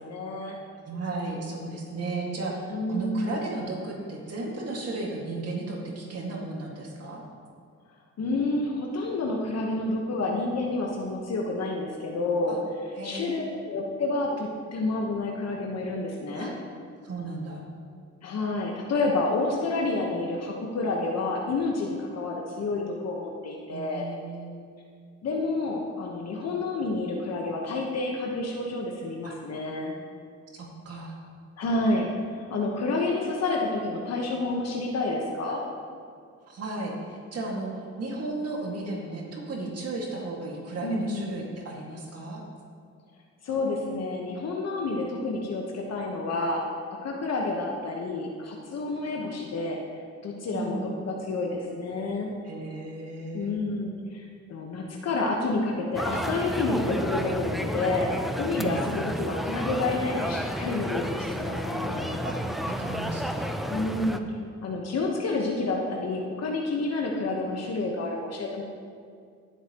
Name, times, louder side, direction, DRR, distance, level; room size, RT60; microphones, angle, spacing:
voice 1, 0.1-0.6 2.7-3.4 8.2-12.6 13.0-16.5 18.2-24.0 25.2-29.9 31.6-35.6 40.8-41.3 43.4-46.6 47.0-49.8 50.2-50.8 51.1-52.3 53.3-58.1 58.4-62.2 63.7-64.2 64.6-68.6, left 2 dB, 55° left, 0 dB, 1.2 m, -29 dB
voice 2, 0.9-7.2 12.5-12.6 12.9-13.4 16.3-16.5 17.0-17.6 23.7-24.7 29.2-29.4 30.5-31.2 35.4-35.6 36.5-37.7 38.0-42.4 49.0-49.3 50.5-50.9 52.4-53.5 58.6-59.2 62.2-63.5, right 2 dB, 55° right, -1 dB, 2.1 m, -35 dB
sound 1, 55.9-64.2, equal, ahead, 0.6 m, -31 dB
16.5 x 8.1 x 3.0 m, 2.2 s
cardioid pair, 90°, 30 cm